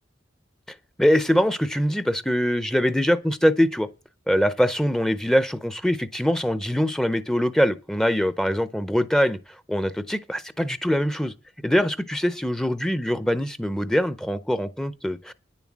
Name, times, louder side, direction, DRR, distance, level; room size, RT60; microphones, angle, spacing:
voice 1, 0.7-3.9 4.3-11.3 11.6-15.3, equal, 5° left, 0.5 m, -23 dB
10.0 x 7.2 x 7.3 m
head